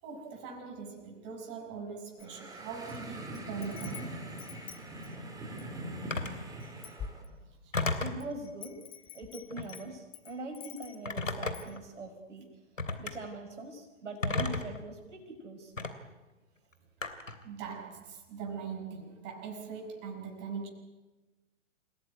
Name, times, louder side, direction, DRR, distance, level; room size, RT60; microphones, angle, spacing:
voice 1, 0.0-4.2 7.2-7.7 17.4-20.7, right 5 dB, 30° right, 1 dB, 6.6 m, -42 dB
Wind chime, 2.2-3.0 3.3-5.8 6.3-6.4 6.6-7.7 8.2-11.1 11.5-11.8, left 7 dB, 15° left, 1.3 m, -47 dB
sound 1, 2.2-7.2, right 1 dB, 10° right, 4.0 m, -42 dB
Telephone, 6.1-6.4 7.7-8.2 9.5-9.9 11.1-11.8 12.8-13.1 14.2-14.8 15.8-15.9 17.0-17.4, left 3 dB, 80° left, 3.1 m, -33 dB
voice 2, 8.0-8.8 9.1-12.5 13.0-15.7, right 2 dB, 65° right, 3 dB, 5.3 m, -42 dB
28.5 x 17.5 x 9.5 m, 1.2 s
figure-of-eight pair, 120°, 38 cm